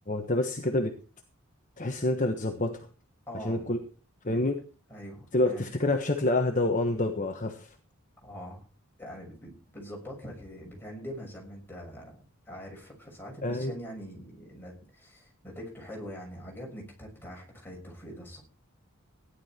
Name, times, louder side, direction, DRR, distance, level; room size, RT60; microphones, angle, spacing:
voice 1, 0.1-1.0 1.8-2.9 3.4-3.8 4.2-4.6 5.3-7.7 13.4-13.7, left 2 dB, 35° left, 4 dB, 1.3 m, -27 dB
voice 2, 3.3-3.7 4.3-4.4 4.9-5.7 8.2-8.6 9.0-12.2 12.4-18.4, equal, 10° left, -2 dB, 6.6 m, -43 dB
16.0 x 11.5 x 4.5 m, 0.35 s
head